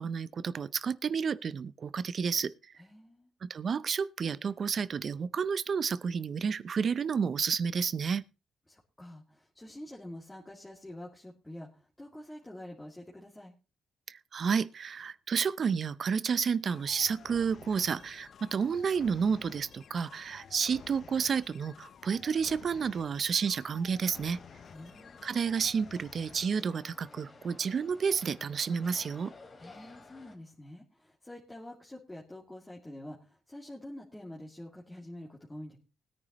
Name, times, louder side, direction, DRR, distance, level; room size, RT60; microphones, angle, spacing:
voice 1, 0.0-2.5 3.4-8.2 14.1-24.4 25.2-29.3, right 6 dB, 50° right, 0.6 m, -31 dB
voice 2, 2.8-3.3 8.7-13.5 24.7-25.2 29.6-35.8, left 1 dB, 10° left, 2.4 m, -47 dB
sound 1, 16.7-26.5, left 7 dB, 55° left, 0.7 m, -53 dB
sound 2, 24.0-30.4, left 3 dB, 40° left, 2.8 m, -54 dB
20.0 x 9.8 x 3.0 m
cardioid pair, 90°, 0 cm